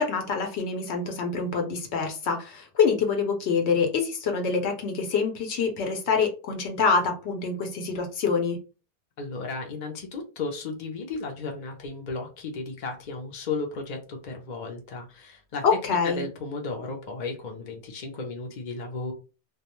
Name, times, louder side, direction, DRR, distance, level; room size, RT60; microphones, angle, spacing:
voice 1, 0.0-8.6 15.6-16.2, left 5 dB, 75° left, 4 dB, 0.9 m, -26 dB
voice 2, 9.2-15.6 16.0-19.1, left 3 dB, 50° left, 1 dB, 0.6 m, -34 dB
2.3 x 2.2 x 2.9 m, 0.32 s
omnidirectional pair, 1.2 m